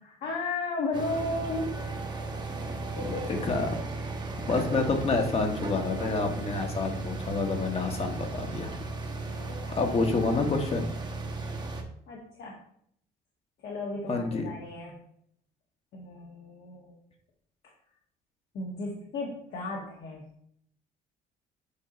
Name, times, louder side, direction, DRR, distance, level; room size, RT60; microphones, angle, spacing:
voice 1, 0.0-1.8 2.9-3.4 9.0-10.1 12.1-12.6 13.6-15.0 15.9-17.0 18.5-20.4, left 2 dB, 70° left, -2 dB, 1.5 m, -35 dB
sound 1, 0.9-11.8, right 3 dB, 25° right, 1.1 m, -36 dB
voice 2, 3.0-3.8 4.5-8.8 9.7-10.9 14.1-14.5, left 3 dB, 35° left, 4 dB, 1.2 m, -28 dB
8.4 x 2.8 x 5.0 m, 0.66 s
cardioid pair, 110°, 17 cm